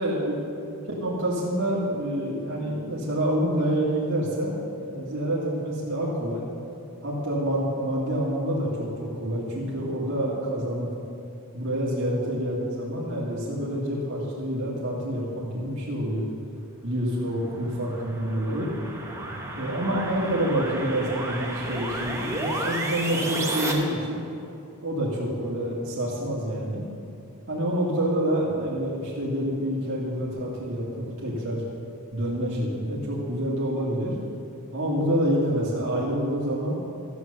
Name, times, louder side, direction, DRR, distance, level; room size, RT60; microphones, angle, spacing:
voice 1, 0.0-6.4 7.0-10.9 11.5-16.3 16.8-18.7 19.5-24.2 24.8-26.8 27.5-31.6 32.1-34.1 34.7-36.8, equal, 60° right, -7 dB, 2.1 m, -27 dB
sound 1, 17.2-23.7, right 2 dB, 15° right, 1.3 m, -32 dB
14.0 x 8.3 x 6.6 m, 2.7 s
head